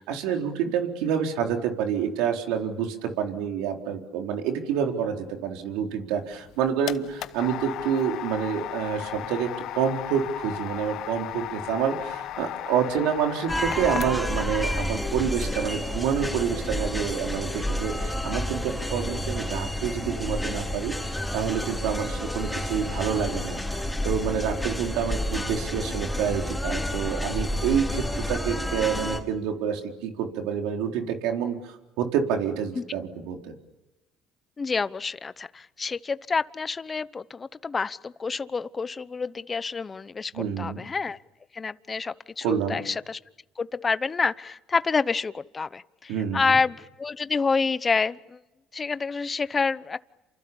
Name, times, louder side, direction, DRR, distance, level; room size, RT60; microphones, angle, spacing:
voice 1, 0.0-33.5 40.3-40.8 42.4-42.8 46.1-46.6, right 8 dB, 85° right, 3 dB, 4.2 m, -28 dB
sound 1, 6.3-14.4, left 13 dB, 70° left, 1.0 m, -36 dB
sound 2, 13.5-29.2, left 1 dB, 5° left, 4.7 m, -30 dB
voice 2, 34.6-41.2 41.5-43.2 43.6-48.4 48.7-50.0, left 4 dB, 25° left, 16 dB, 0.9 m, -28 dB
29.0 x 27.5 x 7.2 m, 1.0 s
supercardioid pair, 95°, 0 cm